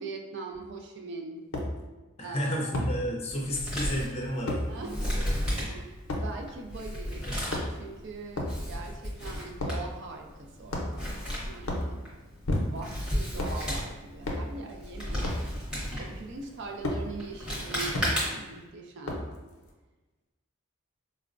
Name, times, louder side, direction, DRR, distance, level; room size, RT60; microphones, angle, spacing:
voice 1, 0.0-1.5 2.2-2.9 4.7-7.3 7.7-12.1 12.6-15.6 16.0-19.3, right 3 dB, 55° right, 2 dB, 0.4 m, -42 dB
sound 1, 0.5-0.6 1.5-1.7 2.7-2.9 4.5-4.6 6.1-6.3 7.3-7.9 8.3-8.6 9.6-9.8 10.7-11.1 11.6-11.9 12.4-12.9 13.3-13.6 14.2-14.5 15.2-15.5 16.8-17.0 17.9-18.1 19.0-19.4, left 1 dB, 75° left, 0.6 m, -30 dB
voice 2, 2.2-5.5, equal, 30° left, -2 dB, 0.5 m, -32 dB
Male speech man speaking, 3.3-18.6, equal, 5° right, 0.8 m, -35 dB
4.3 x 2.0 x 2.5 m, 1.2 s
head